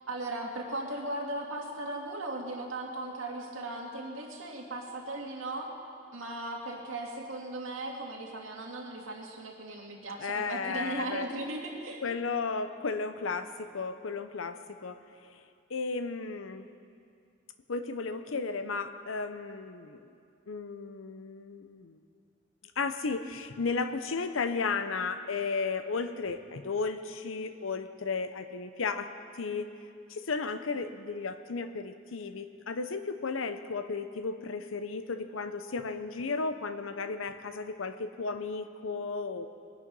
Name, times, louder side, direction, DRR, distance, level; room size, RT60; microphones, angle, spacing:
voice 1, 0.1-5.7 6.1-12.0, right 2 dB, 90° right, 0 dB, 2.2 m, -37 dB
voice 2, 10.2-11.3 12.0-15.0 15.7-16.7 17.7-20.1 20.5-22.0 22.8-29.7 30.1-39.5, left 4 dB, 85° left, 10 dB, 0.7 m, -34 dB
21.5 x 9.9 x 5.4 m, 2.4 s
head